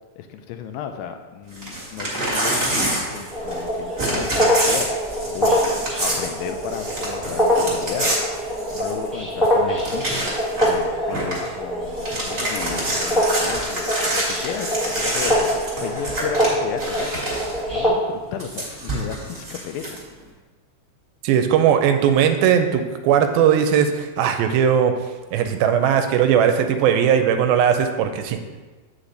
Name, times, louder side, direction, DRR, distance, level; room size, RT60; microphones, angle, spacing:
voice 1, 0.2-4.9 5.3-5.6 6.0-8.2 8.7-10.3 10.6-17.2 17.7-20.0, left 8 dB, 80° left, 6 dB, 2.2 m, -34 dB
Crumpling crinkling / Tearing, 1.5-3.7 4.0-9.1 9.4-9.5 9.8-10.8 11.1-11.5 11.8-17.6 18.4-20.0, right 1 dB, 25° right, 1.4 m, -27 dB
sound 1, 3.3-17.9, equal, ahead, 0.7 m, -24 dB
voice 2, 21.2-24.9 25.3-28.4, right 8 dB, 85° right, 7 dB, 2.4 m, -18 dB
8.2 x 5.9 x 3.9 m, 1.3 s
omnidirectional pair, 4.2 m